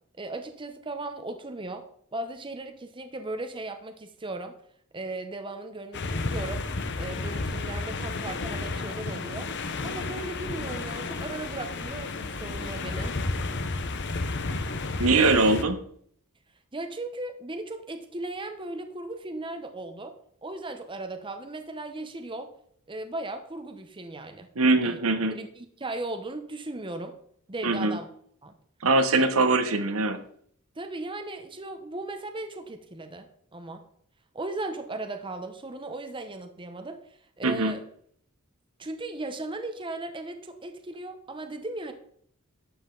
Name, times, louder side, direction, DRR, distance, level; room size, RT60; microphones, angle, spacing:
voice 1, 0.2-1.8 2.1-4.5 4.9-6.6 7.0-9.5 9.8-13.1 16.7-20.1 20.4-22.5 22.9-24.5 24.8-25.0 25.3-27.2 27.5-28.1 28.4-28.5 29.1-29.3 30.7-33.8 34.3-37.8 38.8-41.9, right 2 dB, 25° right, 7 dB, 0.9 m, -37 dB
sound 1, 5.9-15.6, left 3 dB, 55° left, 0.9 m, -32 dB
voice 2, 15.0-15.8 24.6-25.3 27.6-28.0 28.8-30.2 37.4-37.7, right 3 dB, 70° right, 8 dB, 1.2 m, -22 dB
12.5 x 8.0 x 3.9 m, 0.63 s
head